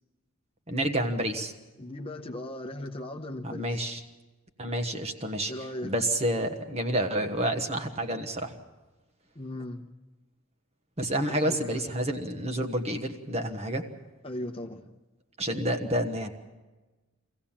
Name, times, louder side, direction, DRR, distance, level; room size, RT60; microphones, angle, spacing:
voice 1, 0.7-1.5 3.4-4.0 4.6-5.5 5.8-8.5 11.0-13.8 15.4-16.3, right 1 dB, 30° right, 6 dB, 1.3 m, -29 dB
voice 2, 1.8-3.9 5.5-5.9 9.3-9.8 11.1-11.8 14.2-14.9, left 1 dB, 25° left, 4 dB, 0.9 m, -38 dB
24.5 x 16.0 x 7.3 m, 1.2 s
head